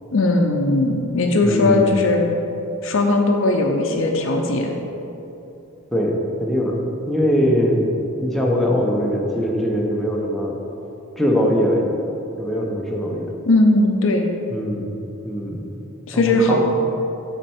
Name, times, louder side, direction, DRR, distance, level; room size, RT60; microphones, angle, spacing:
voice 1, 0.1-2.2 2.8-4.8 13.5-14.3 16.1-16.6, left 2 dB, 65° left, 3 dB, 0.6 m, -18 dB
voice 2, 1.4-1.9 5.9-6.8 7.1-7.8 8.2-10.6 11.2-12.0 12.4-13.3 14.5-14.9 15.2-15.8 16.1-16.6, equal, ahead, -2 dB, 0.8 m, -21 dB
7.9 x 4.4 x 4.3 m, 2.9 s
head